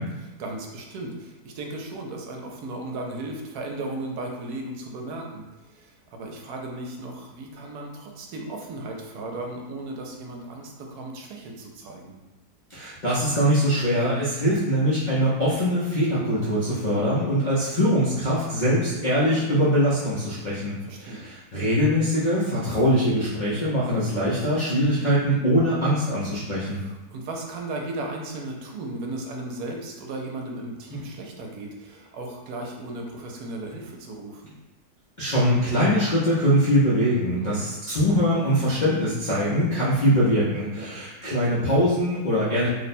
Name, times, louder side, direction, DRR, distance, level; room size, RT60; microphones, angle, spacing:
voice 1, 0.1-12.2 20.8-21.2 26.6-34.5 37.4-37.7 40.8-41.0, right 2 dB, 75° right, 1 dB, 1.1 m, -36 dB
voice 2, 12.7-20.7 21.0-26.8 35.2-42.7, equal, 55° left, -9 dB, 0.5 m, -22 dB
2.9 x 2.1 x 4.1 m, 1.0 s
omnidirectional pair, 1.7 m